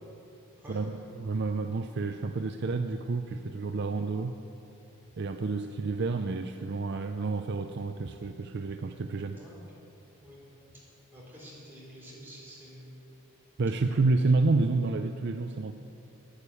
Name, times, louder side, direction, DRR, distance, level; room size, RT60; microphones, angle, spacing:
voice 1, 0.7-4.3 5.2-9.4 13.6-15.7, right 3 dB, 50° right, 7 dB, 0.5 m, -29 dB
voice 2, 9.4-9.9 10.2-10.5 10.7-10.8 11.1-12.9, equal, 10° right, -6 dB, 3.9 m, -49 dB
11.5 x 9.9 x 8.4 m, 2.9 s
head